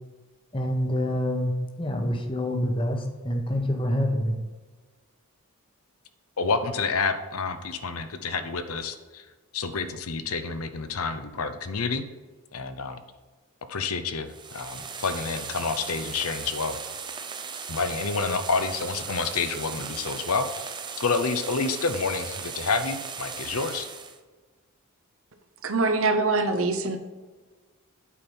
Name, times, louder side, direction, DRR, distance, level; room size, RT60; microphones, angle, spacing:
voice 1, 0.5-1.5 1.8-4.3, equal, 25° left, 4 dB, 1.0 m, -26 dB
voice 2, 6.4-9.2 9.5-12.0 12.5-13.0 13.7-16.8 17.7-20.7 21.0-23.9, left 4 dB, 85° left, 9 dB, 0.8 m, -29 dB
sound 1, 14.3-24.2, right 6 dB, 20° right, 0.5 m, -37 dB
voice 3, 25.6-27.0, right 3 dB, 65° right, 7 dB, 0.8 m, -24 dB
8.6 x 4.5 x 5.5 m, 1.3 s
head